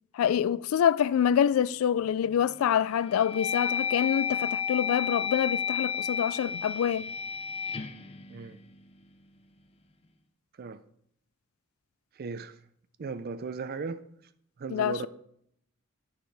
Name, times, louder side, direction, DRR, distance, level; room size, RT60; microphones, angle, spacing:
voice 1, 0.1-7.1 14.7-15.1, left 9 dB, 85° left, 0.3 m, -26 dB
sound 1, 2.0-2.5 3.0-9.1, left 7 dB, 30° left, 0.5 m, -32 dB
voice 2, 12.2-12.5 13.0-14.0 14.6-15.1, right 4 dB, 50° right, 0.4 m, -36 dB
9.1 x 6.5 x 3.3 m
head